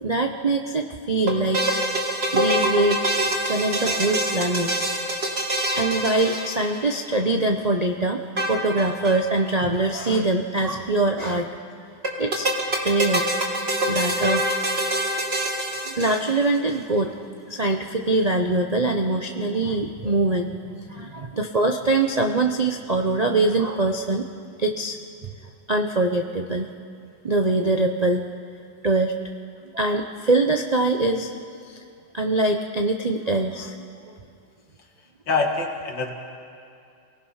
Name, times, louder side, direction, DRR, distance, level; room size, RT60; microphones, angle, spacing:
voice 1, 0.0-2.0 2.3-3.0 3.5-4.7 5.2-5.4 5.8-8.2 8.5-11.5 12.2-12.5 12.8-13.3 13.9-14.5 15.9-17.2 17.5-20.6 20.9-24.2 24.6-25.0 25.7-26.7 27.2-28.2 28.8-29.1 29.7-31.3 31.7-31.8 32.1-34.1, right 2 dB, 65° right, 4 dB, 0.4 m, -23 dB
sound 1, 1.3-7.0 8.4-9.2 9.5-9.6 9.7-9.8 12.0-16.6, right 1 dB, 35° right, 2.3 m, -25 dB
voice 2, 35.3-36.1, left 4 dB, 75° left, 2 dB, 2.7 m, -24 dB
28.0 x 19.0 x 5.7 m, 2.5 s
omnidirectional pair, 2.1 m